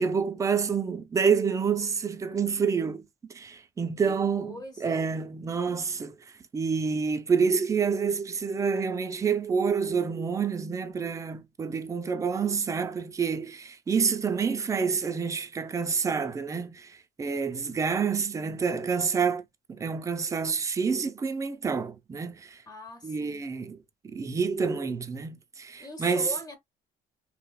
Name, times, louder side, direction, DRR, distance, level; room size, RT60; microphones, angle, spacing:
voice 1, 0.0-3.0 3.3-6.1 6.5-19.4 19.7-22.6 23.0-26.3, right 5 dB, 20° right, 0.3 m, -28 dB
voice 2, 4.1-5.1 22.7-23.4 25.8-26.6, left 1 dB, 25° left, 0.6 m, -41 dB
2.8 x 2.0 x 2.2 m
cardioid pair, 110°, 17 cm